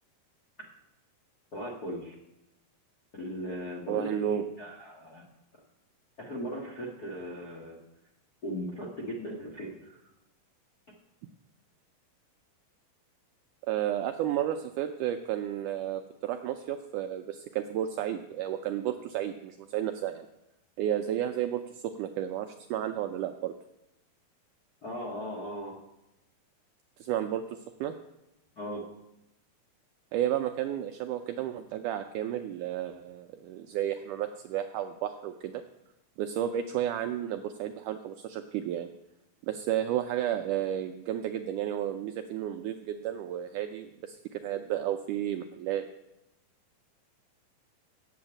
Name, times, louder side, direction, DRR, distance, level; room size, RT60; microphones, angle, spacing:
voice 1, 1.5-2.1 3.1-5.3 6.2-7.8 8.4-10.0 24.8-25.7 28.6-28.8, equal, 55° left, -3 dB, 1.0 m, -38 dB
voice 2, 3.9-4.5 13.7-20.3 20.8-23.5 27.0-28.0 30.1-35.6 36.2-38.9 39.4-45.9, right 11 dB, 90° right, 7 dB, 1.8 m, -32 dB
8.2 x 7.8 x 8.6 m, 0.90 s
omnidirectional pair, 4.2 m